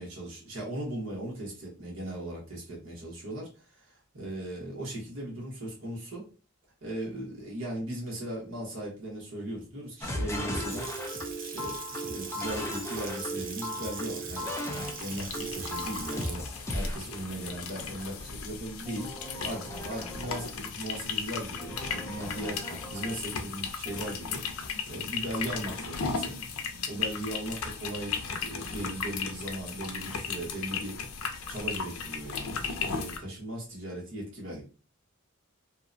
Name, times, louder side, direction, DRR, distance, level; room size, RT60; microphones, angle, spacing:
voice 1, 0.0-6.3 6.8-10.9 11.4-24.4 24.9-26.4 26.9-31.0 31.5-34.6, right 1 dB, 70° right, -3 dB, 1.1 m, -38 dB
sound 1, 10.0-17.0 18.8-20.5 21.6-23.2 23.9-24.1, equal, 15° left, 0.4 m, -37 dB
Water tap faucet / Sink (filling or washing) / Splash splatter, 10.4-18.4, right 5 dB, 45° right, 0.5 m, -42 dB
sound 2, 14.8-33.2, left 5 dB, 85° left, 0.5 m, -36 dB
2.8 x 2.1 x 2.5 m, 0.35 s
head